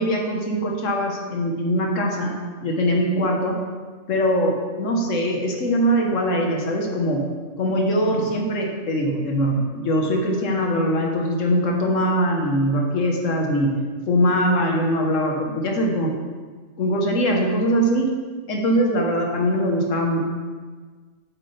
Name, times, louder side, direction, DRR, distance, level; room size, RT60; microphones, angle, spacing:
voice 1, 0.0-2.3 2.6-3.6 4.1-7.2 7.6-13.8 14.1-16.1 16.8-18.1 18.5-20.2, equal, 70° left, 0 dB, 1.6 m, -22 dB
8.3 x 7.8 x 3.4 m, 1.4 s
omnidirectional pair, 1.4 m